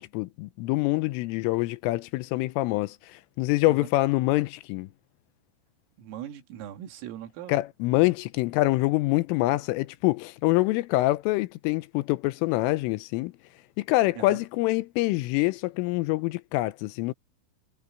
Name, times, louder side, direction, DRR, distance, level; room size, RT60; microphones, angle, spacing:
voice 1, 0.0-4.9 7.5-13.3 13.8-17.1, left 19 dB, 85° left, 3.2 m, -25 dB
voice 2, 6.0-7.6 14.2-14.4, right 11 dB, 85° right, 4.8 m, -40 dB
omnidirectional pair, 5.8 m